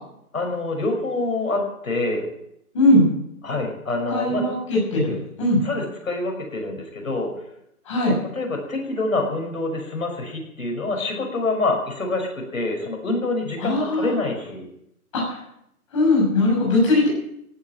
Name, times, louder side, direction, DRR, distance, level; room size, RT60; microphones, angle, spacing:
voice 1, 0.3-2.3 3.4-4.5 5.6-7.3 8.3-14.6, left 2 dB, 60° left, 3 dB, 6.0 m, -26 dB
voice 2, 2.7-3.1 4.1-5.6 7.9-8.1 13.6-14.1 15.1-15.2 15.9-17.1, left 2 dB, 20° left, -3 dB, 6.9 m, -19 dB
17.0 x 8.9 x 9.0 m, 0.75 s
hypercardioid pair, 170°, 45 cm